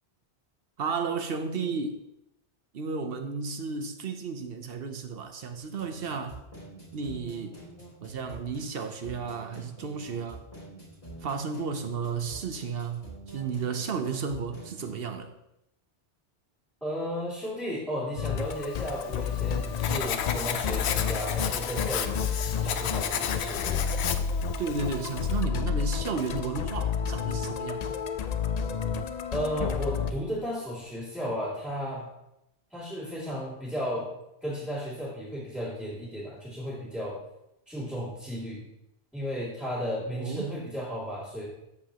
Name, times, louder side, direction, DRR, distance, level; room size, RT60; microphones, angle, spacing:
voice 1, 0.8-2.0 2.7-6.4 6.9-7.6 8.0-10.4 11.2-15.3 24.6-27.8 40.2-40.5, right 5 dB, 65° right, 7 dB, 1.0 m, -33 dB
sound 1, 5.6-14.9, right 2 dB, 40° left, 3.3 m, -46 dB
voice 2, 16.8-23.9 29.3-32.1 32.7-34.1 34.4-37.2 37.7-38.6 39.1-41.4, equal, ahead, -11 dB, 2.7 m, -34 dB
Musical instrument, 18.2-30.1, left 6 dB, 55° left, 0.4 m, -31 dB
Writing, 18.7-25.4, left 8 dB, 85° left, 0.9 m, -33 dB
13.0 x 5.2 x 2.9 m, 0.84 s
omnidirectional pair, 1.1 m